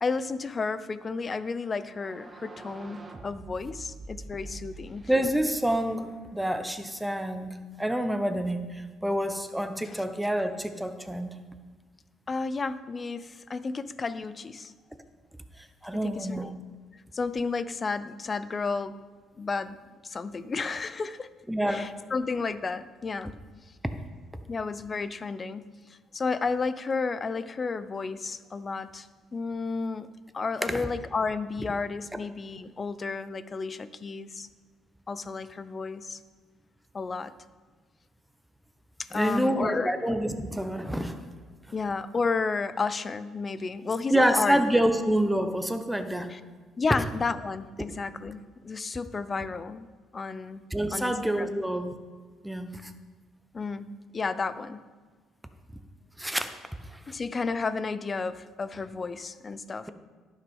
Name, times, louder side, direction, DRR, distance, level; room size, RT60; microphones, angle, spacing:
voice 1, 0.0-5.1 9.9-10.0 12.3-14.7 16.0-16.5 16.9-19.0 19.4-19.8 20.0-21.3 21.7-23.4 24.5-25.6 25.9-34.5 35.1-36.2 36.9-37.3 39.0-39.9 41.7-44.8 46.3-46.4 46.8-49.9 50.1-50.6 50.9-51.6 53.5-53.9 54.1-54.8 57.1-59.9, left 4 dB, 35° left, 14 dB, 0.5 m, -32 dB
sound 1, 1.8-6.6, right 2 dB, 30° right, 1.2 m, -46 dB
voice 2, 5.1-11.3 15.8-16.5 21.5-21.9 30.6-30.8 39.1-41.2 44.1-46.3 50.7-52.0 52.4-52.9 56.2-56.5 56.9-57.2, right 1 dB, 5° right, 9 dB, 1.0 m, -27 dB
11.0 x 6.4 x 5.4 m, 1.4 s
supercardioid pair, 70°, 0 cm